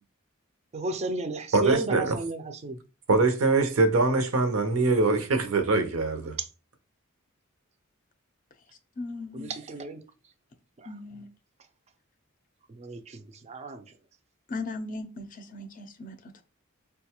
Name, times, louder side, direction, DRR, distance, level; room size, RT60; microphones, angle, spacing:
voice 1, 0.7-2.8 9.3-10.0 12.8-13.8, right 3 dB, 30° right, 0.4 m, -33 dB
voice 2, 1.5-2.2 3.1-6.4, right 3 dB, 75° right, 0.7 m, -23 dB
voice 3, 9.0-9.5 10.9-11.3 14.5-16.4, left 2 dB, 40° left, 0.4 m, -38 dB
3.8 x 2.3 x 2.9 m
head